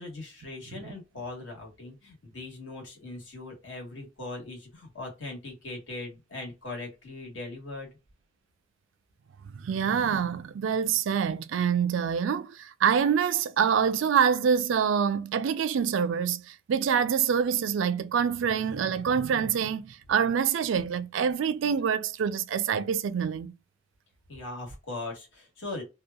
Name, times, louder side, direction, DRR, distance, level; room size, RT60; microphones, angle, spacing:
voice 1, 0.0-7.9 24.3-25.8, left 2 dB, 75° left, 1.4 m, -40 dB
voice 2, 9.5-23.5, right 7 dB, 70° right, 0.3 m, -26 dB
2.7 x 2.2 x 2.3 m
head